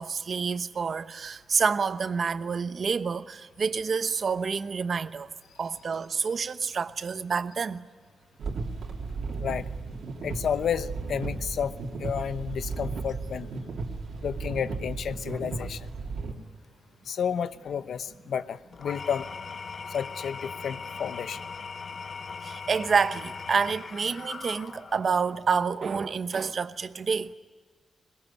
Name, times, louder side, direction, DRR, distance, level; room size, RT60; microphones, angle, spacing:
voice 1, 0.0-5.3 5.6-7.9 22.4-27.3, right 5 dB, 50° right, 1.0 m, -28 dB
sound 1, 8.4-16.3, right 3 dB, 70° right, 3.1 m, -35 dB
voice 2, 10.2-11.7 12.0-13.5 14.2-15.9 17.1-19.3 19.9-21.4, left 8 dB, 75° left, 0.8 m, -31 dB
Engine / Tools, 18.7-25.2, left 5 dB, 45° left, 1.0 m, -39 dB
21.5 x 21.5 x 10.0 m
wide cardioid pair, 125°, 0 cm